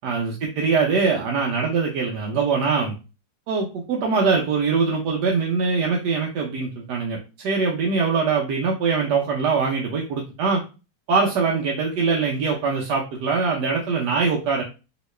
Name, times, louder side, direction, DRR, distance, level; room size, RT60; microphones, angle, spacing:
voice 1, 0.0-2.9 3.5-10.6 11.1-14.6, right 5 dB, 75° right, -1 dB, 1.2 m, -23 dB
3.0 x 2.9 x 3.1 m, 0.31 s
omnidirectional pair, 1.9 m